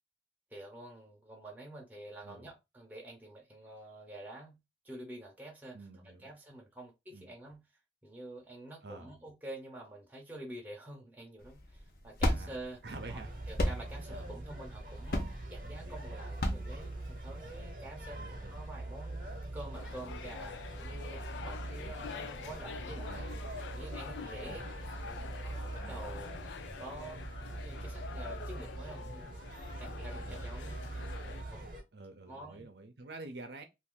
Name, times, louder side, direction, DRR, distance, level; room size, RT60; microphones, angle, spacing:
voice 1, 0.5-5.8 6.0-7.6 8.0-12.8 13.1-13.2 13.5-23.3 23.7-24.6 25.0-27.3 27.6-29.2 29.8-31.0 31.5-31.7 32.3-32.7, right 1 dB, 10° right, 0.7 m, -48 dB
voice 2, 5.7-6.3 7.1-7.3 8.8-9.1 12.3-12.5 12.8-13.3 14.1-14.3 18.2-18.5 23.0-23.4 24.5-24.6 25.8-26.4 30.2-30.5 31.9-33.6, right 2 dB, 70° right, 0.6 m, -48 dB
sound 1, 11.4-17.6, left 1 dB, 55° left, 0.7 m, -35 dB
sound 2, 12.8-31.8, right 2 dB, 45° right, 0.9 m, -43 dB
sound 3, 19.7-31.4, left 6 dB, 80° left, 0.3 m, -46 dB
2.6 x 2.5 x 3.6 m
head